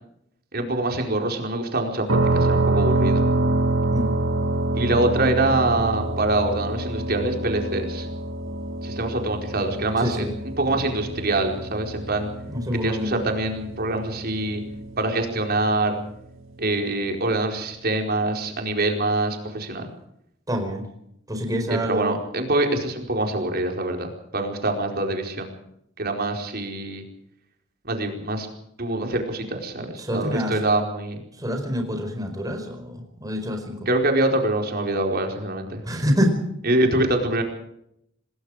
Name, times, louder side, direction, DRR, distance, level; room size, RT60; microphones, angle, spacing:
voice 1, 0.5-3.2 4.7-8.1 8.8-10.3 10.6-12.3 12.8-14.6 15.0-16.0 16.6-19.9 21.7-25.5 26.0-27.0 27.8-28.5 28.8-31.2 33.9-35.8 36.7-37.4, right 2 dB, 50° right, 3 dB, 4.6 m, -25 dB
sound 1, 2.1-15.8, right 2 dB, 80° right, 2.3 m, -26 dB
voice 2, 10.0-10.3 10.7-10.8 12.5-13.1 20.5-20.9 21.3-22.2 30.0-30.6 31.4-33.8 35.8-36.4, equal, 20° right, 4 dB, 4.8 m, -26 dB
27.0 x 20.5 x 5.0 m, 0.76 s
head